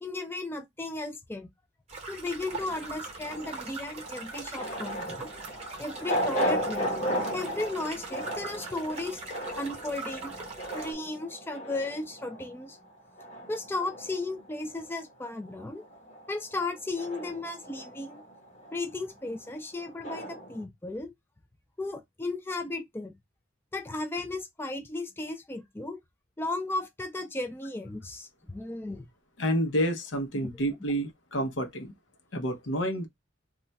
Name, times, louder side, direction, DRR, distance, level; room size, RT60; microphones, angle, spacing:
voice 1, 0.0-1.5 2.1-5.3 5.8-7.0 7.3-9.2 9.6-10.3 10.7-12.8 13.5-15.8 16.3-18.2 18.7-21.1 21.8-23.2 23.7-26.0 26.4-29.0 30.4-30.5, left 2 dB, 10° left, 0.4 m, -35 dB
sound 1, 1.9-10.9, right 4 dB, 35° right, 0.8 m, -42 dB
sound 2, 2.5-15.1 15.4-20.6, equal, 40° left, 0.9 m, -36 dB
voice 2, 29.4-31.9 32.3-33.1, equal, 90° left, 0.7 m, -29 dB
2.3 x 2.2 x 3.9 m
head